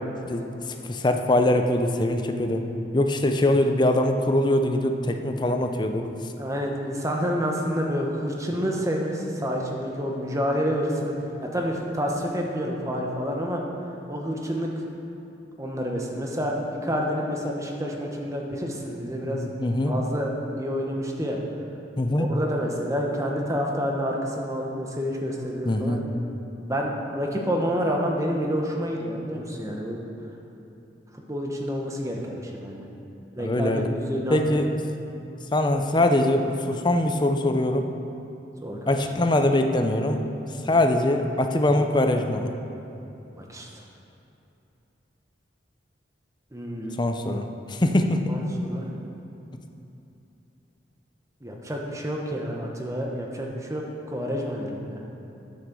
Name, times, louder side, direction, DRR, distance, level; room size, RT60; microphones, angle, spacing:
voice 1, 0.8-2.6 2.9-6.1 19.2-19.9 22.0-22.3 25.7-26.1 33.4-33.9 34.3-34.7 35.5-37.9 38.9-40.2 40.6-42.5 47.0-48.3, left 1 dB, 25° left, 6 dB, 0.6 m, -23 dB
voice 2, 6.4-11.1 11.4-13.6 14.1-14.7 15.6-19.6 19.8-21.4 22.1-26.0 26.6-30.0 31.3-32.9 33.3-34.4 38.6-38.9 43.4-43.7 46.5-47.0 48.3-48.9 51.4-55.0, equal, 15° right, 0 dB, 1.1 m, -28 dB
9.4 x 6.6 x 6.9 m, 2.8 s
head